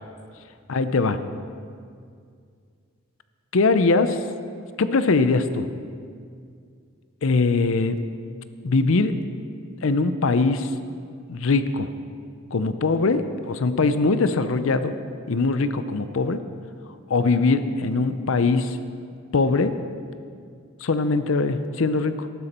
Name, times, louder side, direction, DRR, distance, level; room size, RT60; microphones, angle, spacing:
voice 1, 0.7-1.2 3.5-4.2 4.8-5.7 7.2-8.0 8.6-9.2 9.8-10.7 11.3-11.9 12.5-14.9 15.3-16.4 17.1-18.8 19.3-19.8 20.8-22.3, left 3 dB, 65° left, 11 dB, 0.6 m, -21 dB
14.0 x 12.0 x 4.3 m, 2.3 s
head